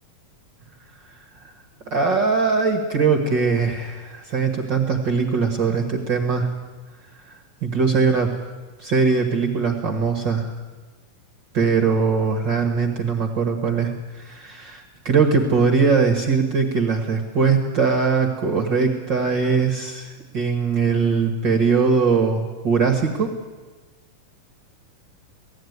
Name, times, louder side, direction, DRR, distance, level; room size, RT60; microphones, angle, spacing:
voice 1, 1.9-6.5 7.6-8.3 8.8-10.5 11.5-23.3, right 5 dB, 45° right, 2 dB, 1.5 m, -21 dB
18.0 x 15.5 x 9.5 m, 1.3 s
omnidirectional pair, 4.2 m